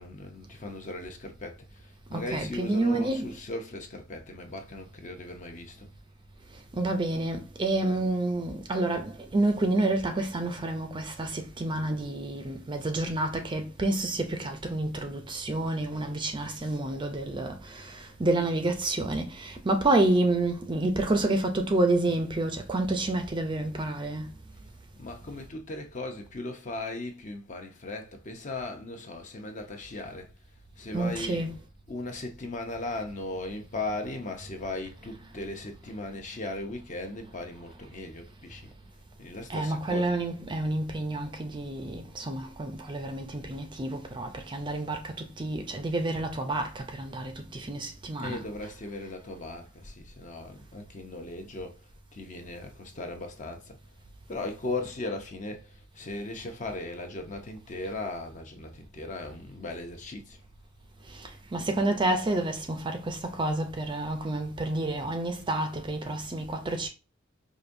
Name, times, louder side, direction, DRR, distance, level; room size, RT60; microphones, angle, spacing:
voice 1, 0.0-1.8 2.1-5.9 25.0-30.3 30.8-31.5 31.9-38.7 39.2-40.2 48.2-51.8 52.1-53.8 54.3-60.4, left 2 dB, 40° left, 0.7 m, -37 dB
voice 2, 2.1-3.3 6.7-24.3 30.9-31.5 39.5-48.4 61.1-66.9, right 2 dB, 25° right, 0.5 m, -29 dB
4.9 x 2.6 x 2.6 m
head